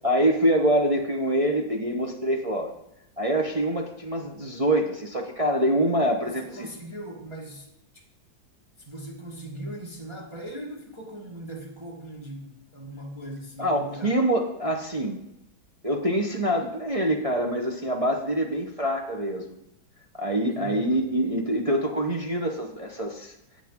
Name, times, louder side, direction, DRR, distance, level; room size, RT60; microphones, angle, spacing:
voice 1, 0.0-2.7 3.2-6.7 13.6-15.2 15.8-19.6 20.1-23.3, right 1 dB, 40° right, 0 dB, 0.5 m, -25 dB
voice 2, 6.2-8.0 8.8-14.2 20.5-21.0, right 1 dB, 15° right, -2 dB, 1.4 m, -40 dB
14.0 x 8.3 x 3.7 m, 0.83 s
omnidirectional pair, 2.1 m